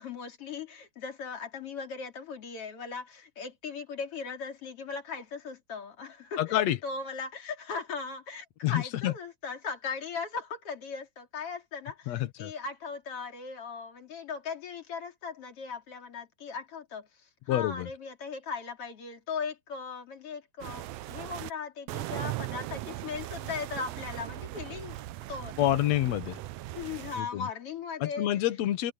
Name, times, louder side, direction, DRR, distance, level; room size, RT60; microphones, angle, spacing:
voice 1, 0.0-25.0 25.3-25.8 26.7-28.3, left 5 dB, 45° left, 3.7 m, -38 dB
voice 2, 6.4-6.8 8.6-9.1 12.1-12.5 17.5-17.9 25.6-26.4 27.2-27.5 28.0-28.9, left 13 dB, 60° left, 2.2 m, -28 dB
sound 1, 20.6-21.5 21.9-27.2, right 16 dB, 85° right, 1.5 m, -39 dB
omnidirectional pair, 3.8 m